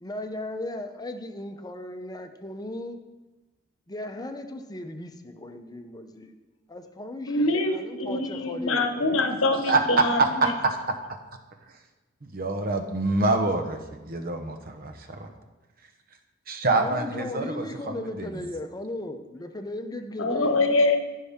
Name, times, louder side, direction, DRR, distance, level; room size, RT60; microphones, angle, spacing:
voice 1, 0.0-3.0 3.9-6.4 6.7-9.3 16.7-20.6, left 1 dB, 20° left, 6 dB, 0.7 m, -36 dB
voice 2, 7.3-10.5 20.2-21.0, left 2 dB, 80° left, 7 dB, 1.0 m, -24 dB
voice 3, 9.7-10.8 12.2-15.2 16.5-18.3, right 3 dB, 50° right, 5 dB, 1.0 m, -26 dB
14.5 x 5.6 x 3.6 m, 1.2 s
head